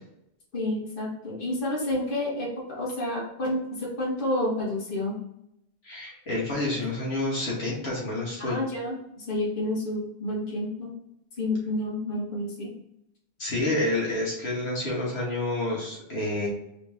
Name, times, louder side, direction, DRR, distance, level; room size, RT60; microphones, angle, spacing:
voice 1, 0.5-5.1 8.4-10.9 11.4-12.7, left 1 dB, 55° left, -5 dB, 1.5 m, -29 dB
voice 2, 5.8-8.6 13.4-16.5, left 2 dB, 80° left, -5 dB, 1.5 m, -29 dB
3.9 x 3.2 x 3.5 m, 0.81 s
omnidirectional pair, 1.1 m